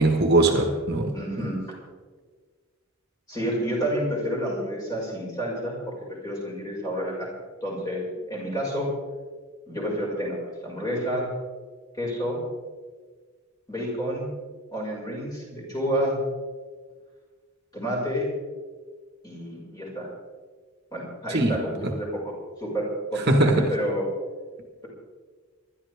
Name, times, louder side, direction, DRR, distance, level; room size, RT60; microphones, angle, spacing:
voice 1, 0.0-1.5 21.3-21.6 23.3-23.7, right 2 dB, 50° right, 1.6 m, -21 dB
voice 2, 1.1-1.6 3.3-7.3 7.6-8.0 8.3-8.9 9.7-10.4 10.6-11.3 11.9-12.4 13.7-14.3 14.7-16.2 17.7-18.3 19.2-20.1 20.9-22.3 22.6-24.1, equal, 20° left, 6.0 m, -29 dB
25.5 x 12.0 x 3.6 m
head